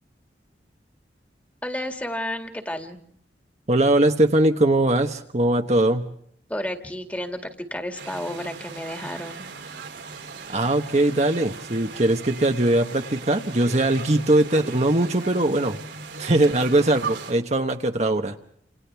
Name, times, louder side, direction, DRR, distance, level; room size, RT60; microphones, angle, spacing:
voice 1, 1.6-3.0 6.5-9.5, left 1 dB, 10° left, 5 dB, 2.0 m, -32 dB
voice 2, 3.7-6.1 10.5-15.8 16.2-18.3, right 1 dB, 40° right, 5 dB, 1.1 m, -21 dB
sound 1, 7.9-17.3, right 4 dB, 80° right, 3.0 m, -38 dB
29.0 x 28.0 x 3.5 m, 0.64 s
head